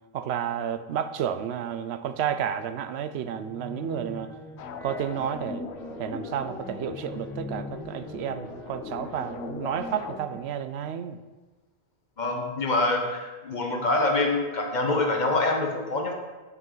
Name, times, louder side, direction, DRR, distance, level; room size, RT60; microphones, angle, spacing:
voice 1, 0.1-4.3 4.8-5.7 6.0-11.2, right 9 dB, 80° right, 0.8 m, -31 dB
sound 1, 3.2-10.4, equal, 5° left, 0.6 m, -41 dB
sound 2, 4.6-10.2, left 7 dB, 85° left, 0.9 m, -41 dB
voice 2, 12.2-16.1, left 2 dB, 45° left, 1.2 m, -25 dB
8.3 x 7.7 x 3.9 m
omnidirectional pair, 1.1 m